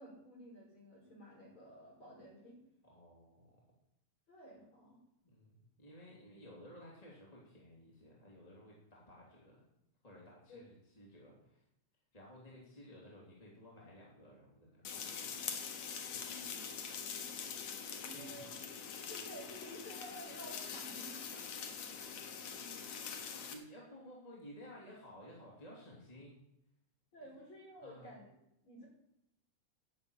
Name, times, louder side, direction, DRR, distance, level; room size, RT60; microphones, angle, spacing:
voice 1, 0.0-2.6 4.3-5.0 10.5-10.6 16.0-17.3 18.0-18.6 19.0-21.5 27.1-28.3 28.6-28.9, equal, 40° left, -3 dB, 6.1 m, -53 dB
voice 2, 2.8-3.6 5.2-9.6 10.0-11.6 12.1-15.4 16.0-16.3 18.1-18.3 21.3-21.6 22.5-23.0 23.3-26.3 27.2-27.3 27.8-28.1, equal, 15° left, -4 dB, 2.8 m, -56 dB
sound 1, 14.8-23.5, left 7 dB, 65° left, 2.5 m, -44 dB
11.5 x 7.1 x 8.9 m, 0.80 s
omnidirectional pair, 3.5 m